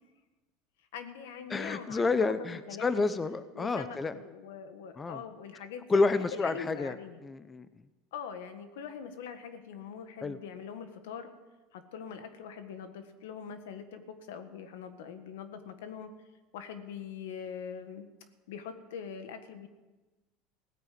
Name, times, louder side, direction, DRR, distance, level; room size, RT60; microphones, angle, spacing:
voice 1, 0.9-2.3 2.7-2.9 3.5-7.2 8.1-11.3 11.7-16.1 16.5-18.1 18.5-19.7, left 7 dB, 85° left, 9 dB, 1.6 m, -43 dB
voice 2, 1.5-4.1 5.0-5.2 5.9-6.9 7.2-7.7 10.2-10.4, left 3 dB, 20° left, 13 dB, 0.7 m, -29 dB
17.0 x 9.1 x 7.7 m, 1.2 s
supercardioid pair, 120°, 0 cm